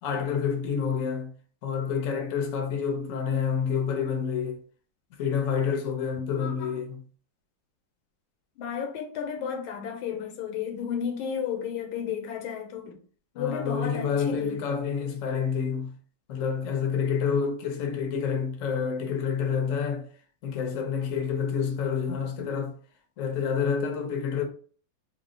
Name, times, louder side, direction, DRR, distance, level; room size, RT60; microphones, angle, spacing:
voice 1, 0.0-1.3 1.6-4.6 5.2-7.0 13.4-15.9 16.3-20.1 20.4-22.8 23.2-24.4, left 6 dB, 70° left, 0.7 m, -28 dB
voice 2, 6.4-6.8 8.6-13.0 13.3-14.6, left 7 dB, 90° left, 1.5 m, -33 dB
3.6 x 2.1 x 3.7 m
omnidirectional pair, 2.3 m